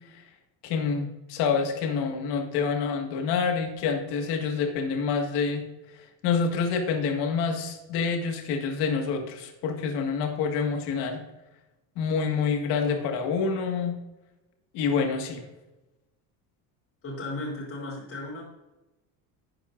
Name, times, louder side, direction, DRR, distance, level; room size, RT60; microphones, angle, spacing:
voice 1, 0.6-5.6 6.2-11.2 12.0-13.9 14.7-15.4, left 5 dB, 65° left, 4 dB, 1.8 m, -27 dB
voice 2, 17.0-18.4, left 2 dB, 30° left, -6 dB, 3.6 m, -35 dB
11.5 x 8.7 x 2.6 m, 1.0 s
cardioid pair, 160°, 43 cm